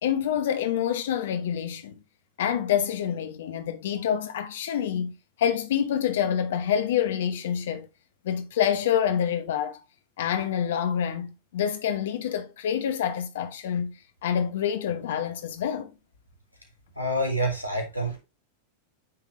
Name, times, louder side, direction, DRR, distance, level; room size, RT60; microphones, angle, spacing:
voice 1, 0.0-1.9 2.4-5.1 5.4-7.9 8.2-9.8 10.2-13.9 14.2-15.9, left 9 dB, 60° left, 0.9 m, -27 dB
voice 2, 17.0-18.2, right 1 dB, 85° right, 2.3 m, -27 dB
8.7 x 3.5 x 3.2 m
figure-of-eight pair, 90°, 0 cm